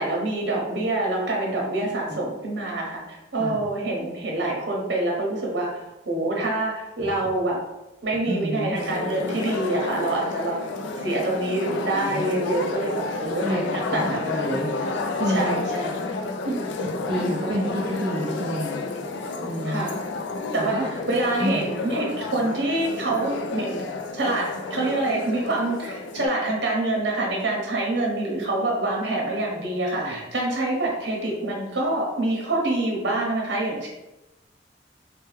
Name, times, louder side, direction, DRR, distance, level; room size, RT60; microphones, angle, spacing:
voice 1, 0.0-7.6 8.0-10.6 11.0-14.4 15.3-15.9 16.4-16.6 19.6-20.0 20.5-20.8 21.1-23.9 24.1-33.9, right 2 dB, 80° right, -1 dB, 0.8 m, -26 dB
voice 2, 8.2-8.7 11.7-12.2 13.2-14.7 15.2-15.7 16.8-18.8 19.4-19.8 20.6-20.9 21.4-21.7 29.9-30.2, equal, 30° right, -5 dB, 0.4 m, -29 dB
sound 1, 8.7-26.3, left 3 dB, 85° left, 0.3 m, -31 dB
3.2 x 2.2 x 3.2 m, 0.97 s
head